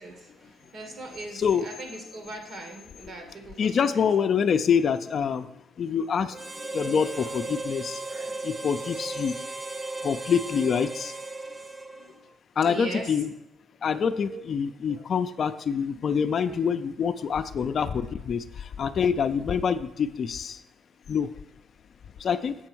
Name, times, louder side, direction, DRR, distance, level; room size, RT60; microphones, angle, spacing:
voice 1, 0.0-4.1 6.2-6.4 6.7-7.6 8.1-8.9 11.8-12.1 12.6-13.1 13.9-14.4 14.9-15.1 15.9-16.6 18.1-18.2, right 2 dB, 60° right, 3 dB, 2.0 m, -42 dB
voice 2, 3.6-8.1 8.4-9.4 10.0-11.1 12.6-13.3 13.8-20.6 21.1-21.3 22.2-22.6, left 7 dB, 55° left, 10 dB, 0.5 m, -26 dB
Harmonica, 6.3-12.3, right 2 dB, 20° right, 0.5 m, -36 dB
7.6 x 4.5 x 6.1 m, 0.88 s
cardioid pair, 90°, 0 cm